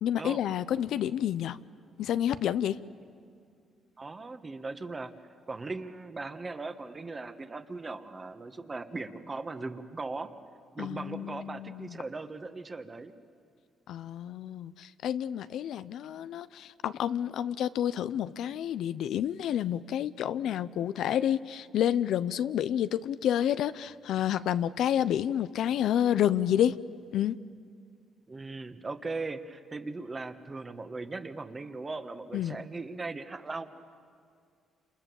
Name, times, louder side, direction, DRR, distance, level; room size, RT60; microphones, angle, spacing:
voice 1, 0.0-1.6 2.0-2.8 10.8-12.0 13.9-26.8 27.1-27.4 32.3-32.6, left 10 dB, 80° left, 0.6 m, -29 dB
voice 2, 4.0-5.1 5.5-10.3 10.7-13.1 28.3-33.7, right 3 dB, 30° right, 1.6 m, -38 dB
29.0 x 27.5 x 7.1 m
cardioid pair, 90°, 0 cm